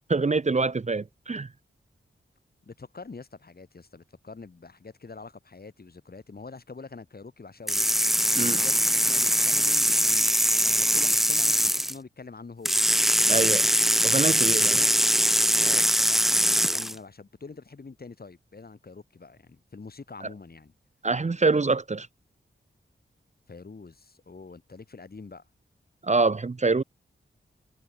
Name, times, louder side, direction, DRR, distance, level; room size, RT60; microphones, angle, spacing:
voice 1, 0.1-1.5 8.3-8.6 13.3-13.6 14.0-14.8 21.0-22.1 26.0-26.8, right 3 dB, 35° right, 0.9 m, -25 dB
voice 2, 2.7-7.9 8.4-10.3 10.6-12.8 13.3-13.6 14.3-15.0 15.5-20.7 23.5-25.4, left 4 dB, 50° left, 4.6 m, -45 dB
sound 1, 7.7-11.9 12.7-17.0, equal, ahead, 0.5 m, -22 dB
wide cardioid pair, 95°, 20 cm